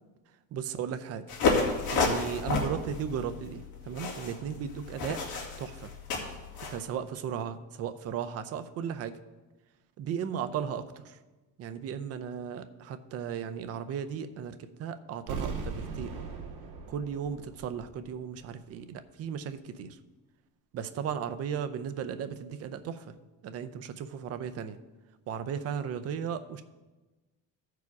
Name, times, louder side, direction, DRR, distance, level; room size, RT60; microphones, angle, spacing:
voice 1, 0.5-1.3 1.9-5.2 5.6-5.9 6.7-9.1 10.0-11.2 11.6-16.1 16.9-20.0 20.7-23.2 23.4-24.8 25.3-26.6, right 8 dB, 40° right, 11 dB, 0.6 m, -36 dB
sound 1, 1.3-6.8, left 4 dB, 55° left, 2.0 m, -31 dB
sound 2, 15.3-18.2 18.4-18.5, right 4 dB, 85° right, 1.9 m, -39 dB
14.5 x 4.9 x 4.7 m, 1.2 s
cardioid pair, 165°, 37 cm